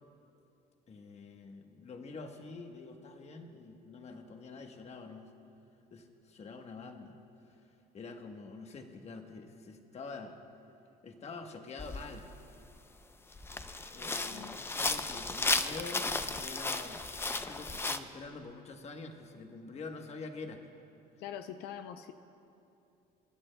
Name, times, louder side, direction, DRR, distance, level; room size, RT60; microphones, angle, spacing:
voice 1, 0.9-5.3 5.9-7.1 7.9-10.4 11.0-12.3 13.9-17.1 17.4-20.6, left 4 dB, 40° left, 5 dB, 1.1 m, -46 dB
sound 1, 11.8-12.1 12.7-12.8 13.3-18.0, left 3 dB, 15° left, 0.5 m, -34 dB
voice 2, 21.2-22.1, left 9 dB, 90° left, 9 dB, 0.5 m, -43 dB
27.5 x 11.5 x 2.2 m, 2.7 s
cardioid pair, 110°, 17 cm